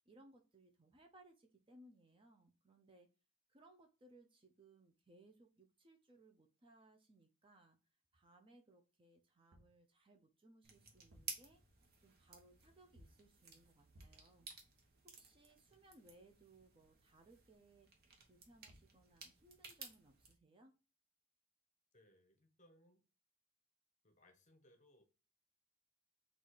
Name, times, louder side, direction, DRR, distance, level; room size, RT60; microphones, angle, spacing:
voice 1, 0.1-3.1 3.5-7.8 8.1-11.6 12.0-14.5 15.0-17.9 18.2-20.7, right 1 dB, 25° right, 4 dB, 0.5 m, -66 dB
sound 1, 9.3-9.8 10.9-11.5 12.9-13.3 13.9-14.3 18.4-18.5 18.7-19.0, equal, 85° right, 0.8 m, -64 dB
sound 2, 10.6-20.3, right 5 dB, 50° right, 0.9 m, -56 dB
voice 2, 21.9-23.0 24.0-25.0, left 1 dB, 35° left, 6 dB, 0.8 m, -69 dB
4.0 x 2.4 x 4.6 m, 0.32 s
head